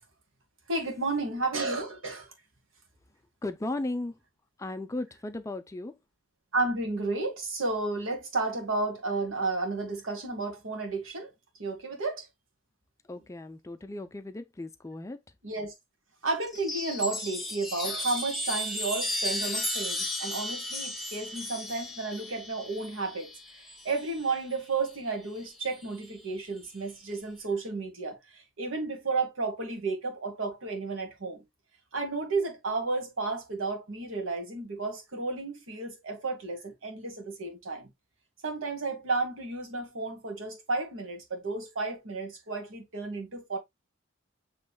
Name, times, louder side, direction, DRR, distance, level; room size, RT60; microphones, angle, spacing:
voice 1, 0.7-2.3 6.5-11.3 11.6-12.3 15.4-15.7 16.2-23.3 23.8-31.4 31.9-37.9 38.4-43.6, right 3 dB, 85° right, 1.4 m, -32 dB
voice 2, 3.4-4.1 4.6-6.0 13.1-15.2, left 2 dB, 15° left, 0.4 m, -36 dB
Chime, 16.4-24.3 25.5-26.1, left 1 dB, ahead, 0.8 m, -35 dB
7.0 x 3.1 x 2.2 m
head